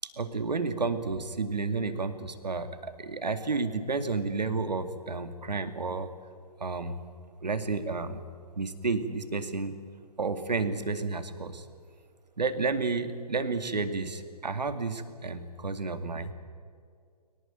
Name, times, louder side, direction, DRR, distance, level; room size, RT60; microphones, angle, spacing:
voice 1, 0.2-6.1 6.6-7.0 7.4-8.2 8.6-9.7 10.2-11.6 12.4-16.3, right 4 dB, 85° right, 9 dB, 2.4 m, -31 dB
23.0 x 18.5 x 9.2 m, 2.2 s
hypercardioid pair, 140°, 21 cm